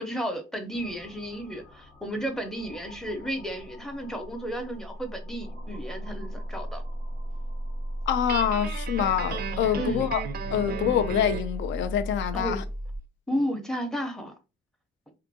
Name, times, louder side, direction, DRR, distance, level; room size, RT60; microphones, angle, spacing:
voice 1, 0.0-6.8 9.7-10.1 12.3-12.6 13.3-14.3, equal, ahead, 0.6 m, -33 dB
sound 1, 0.7-13.0, equal, 90° left, 1.4 m, -36 dB
voice 2, 8.1-10.2 10.5-12.6, left 9 dB, 70° left, 0.4 m, -26 dB
Guitar, 8.3-11.5, right 7 dB, 50° right, 0.4 m, -35 dB
2.6 x 2.5 x 2.6 m
cardioid pair, 90°, 20 cm